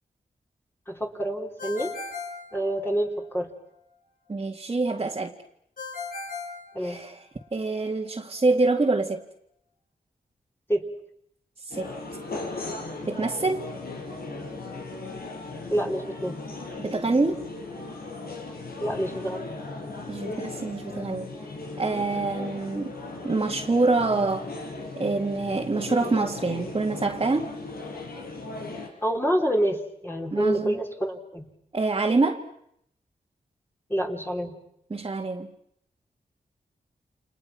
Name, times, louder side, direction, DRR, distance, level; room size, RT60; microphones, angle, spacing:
voice 1, 0.9-1.9 2.5-3.5 6.7-7.0 10.7-10.8 15.7-16.4 18.8-19.5 29.0-31.4 33.9-34.6, right 1 dB, 15° left, 1 dB, 3.6 m, -27 dB
Ringtone, 1.6-3.3 5.8-7.4, left 4 dB, 60° left, 7.6 m, -37 dB
voice 2, 4.3-5.3 6.8-7.2 7.5-9.2 11.7-11.9 13.1-13.6 16.8-17.4 20.1-21.3 21.8-22.9 23.2-24.4 25.0-27.5 30.3-30.7 31.7-32.4 34.9-35.5, right 3 dB, 35° right, -1 dB, 2.1 m, -25 dB
sound 1, 11.7-28.9, left 3 dB, 80° left, 5.6 m, -37 dB
30.0 x 28.0 x 6.0 m, 0.73 s
wide cardioid pair, 105°, 16 cm